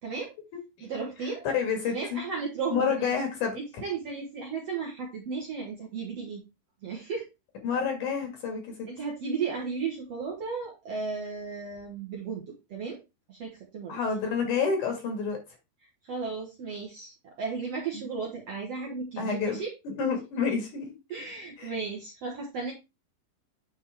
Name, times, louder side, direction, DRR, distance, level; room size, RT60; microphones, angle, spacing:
voice 1, 0.0-0.3 0.8-1.4 1.9-3.1 3.5-6.4 6.8-7.3 8.9-12.4 12.7-13.0 13.3-14.0 16.0-19.7 21.1-22.7, right 5 dB, 55° right, -1 dB, 1.8 m, -34 dB
voice 2, 1.5-2.2 2.7-3.6 7.6-8.7 13.9-15.4 19.2-19.6 19.8-20.9 21.6-21.7, left 6 dB, 55° left, 3 dB, 3.0 m, -29 dB
9.4 x 4.4 x 3.4 m, 0.25 s
omnidirectional pair, 4.5 m